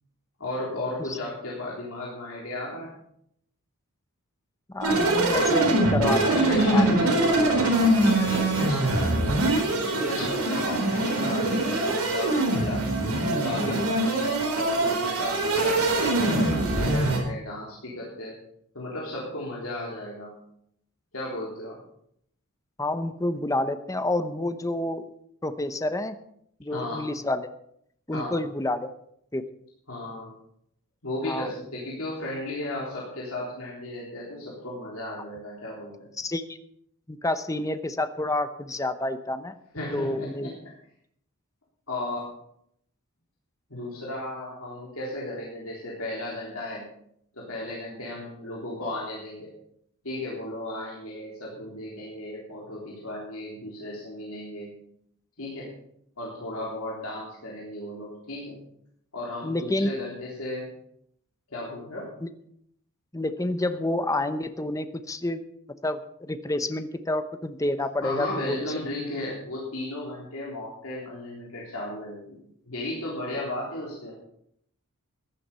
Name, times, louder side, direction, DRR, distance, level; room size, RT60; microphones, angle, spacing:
voice 1, 0.4-2.9 6.3-9.1 9.7-12.9 13.2-18.4 18.7-20.3 21.1-21.8 26.7-27.0 28.1-28.4 29.9-30.3 31.0-36.1 39.7-40.5 41.9-42.2 43.7-46.9 47.3-49.5 50.0-54.7 55.4-55.8 56.2-58.6 59.1-60.7 61.5-62.1 68.0-72.4 72.7-74.1, left 1 dB, 65° left, -5 dB, 3.6 m, -35 dB
voice 2, 4.7-6.9 22.8-25.0 25.4-26.2 26.6-27.5 28.1-28.9 29.3-29.4 31.3-31.5 36.2-36.4 37.1-39.6 39.9-40.5 59.4-59.9 62.2-62.3 63.1-65.4 65.8-68.7 73.4-73.5, left 1 dB, 15° left, 10 dB, 0.8 m, -29 dB
sound 1, 4.8-17.2, right 1 dB, 70° right, 4.3 m, -23 dB
15.0 x 11.0 x 5.5 m, 0.71 s
head